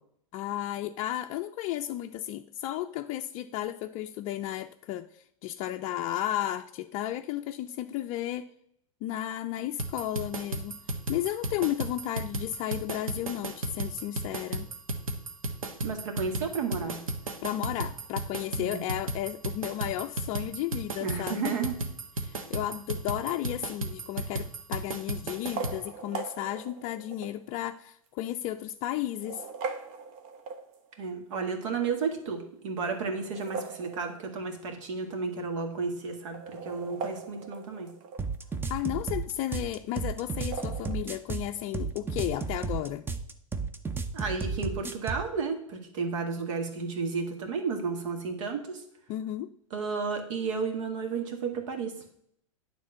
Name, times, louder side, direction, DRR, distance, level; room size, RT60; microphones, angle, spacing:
voice 1, 0.3-8.4 9.0-10.8 11.1-14.7 17.4-21.5 22.2-29.4 38.7-43.1 49.1-49.5, left 13 dB, 40° left, 5 dB, 0.5 m, -33 dB
sound 1, 9.8-25.8, right 2 dB, 80° right, 1.2 m, -34 dB
voice 2, 15.8-17.0 18.6-18.8 21.0-21.8 31.0-37.9 44.1-48.8 49.7-52.0, right 5 dB, 65° right, 4 dB, 1.9 m, -32 dB
sound 2, 23.7-24.1 25.3-27.4 28.1-28.2 29.0-31.0 33.1-34.6 34.9-35.0 35.2-35.3 36.2-38.4 40.3-40.9, right 5 dB, 45° right, 1.2 m, -40 dB
sound 3, 38.2-45.3, right 4 dB, 10° right, 0.7 m, -33 dB
9.6 x 3.7 x 7.0 m, 0.70 s
hypercardioid pair, 95°, 17 cm